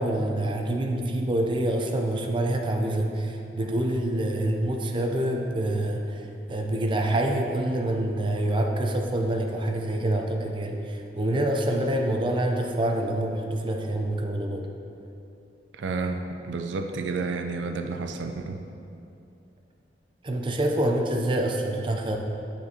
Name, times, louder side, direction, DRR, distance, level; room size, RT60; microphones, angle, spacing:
voice 1, 0.0-14.7 20.2-22.2, right 1 dB, 30° right, 2 dB, 0.4 m, -26 dB
voice 2, 15.7-18.6, right 3 dB, 85° right, 6 dB, 0.4 m, -31 dB
9.0 x 4.3 x 2.7 m, 2.6 s
head